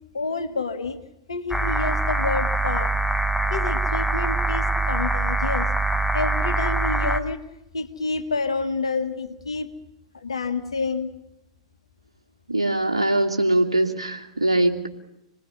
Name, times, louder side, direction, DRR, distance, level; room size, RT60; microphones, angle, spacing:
voice 1, 0.1-1.0 1.3-2.9 3.5-5.7 6.1-7.5 7.7-9.7 10.1-11.1, left 3 dB, 80° left, 10 dB, 1.9 m, -28 dB
sound 1, 1.5-7.2, right 2 dB, ahead, 1.4 m, -23 dB
voice 2, 12.5-14.9, right 1 dB, 85° right, 3 dB, 2.6 m, -22 dB
27.5 x 20.0 x 5.6 m, 0.86 s
figure-of-eight pair, 100°, 3 cm